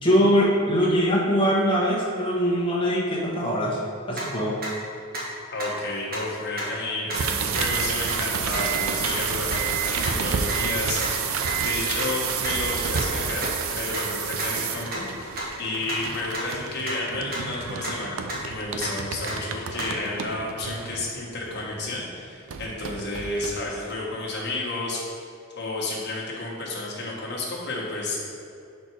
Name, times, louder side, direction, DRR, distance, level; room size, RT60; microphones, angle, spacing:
voice 1, 0.0-3.8 4.1-4.6, equal, 25° left, -5 dB, 1.1 m, -22 dB
sound 1, 4.1-4.2 4.6-4.7 5.1-5.2 5.6-5.7 6.1-6.2 6.6-6.7 7.1-7.2 7.5-7.6 8.1-8.2 8.5-8.6 9.0-9.1 9.5-9.6 10.0-10.1 10.5-10.6 11.0-11.1 11.5-11.6 12.0-12.1 12.4-12.5 13.0-13.1 13.4-13.5 13.9-14.0 14.4-14.5 14.9-15.0 15.4-15.5 15.9-16.0 16.3-16.4 16.9-17.0 17.3-17.4 17.8-17.9 18.3-18.4 18.8-18.9 19.3-19.4 19.8-19.9, right 2 dB, 45° right, 1.4 m, -31 dB
voice 2, 5.5-13.5 13.7-25.2 25.5-28.2, left 2 dB, 50° left, -4 dB, 1.3 m, -31 dB
sound 2, 7.1-22.0 22.5-23.9, right 6 dB, 75° right, 0.5 m, -29 dB
6.0 x 4.3 x 4.6 m, 2.4 s
head